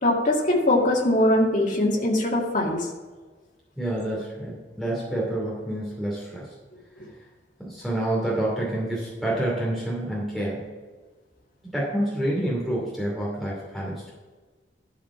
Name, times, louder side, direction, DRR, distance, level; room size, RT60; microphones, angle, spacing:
voice 1, 0.0-2.9, left 1 dB, 45° left, -3 dB, 2.1 m, -21 dB
voice 2, 3.8-6.4 7.6-10.7 11.7-14.1, right 1 dB, ahead, -6 dB, 2.6 m, -28 dB
12.5 x 5.0 x 6.0 m, 1.4 s
head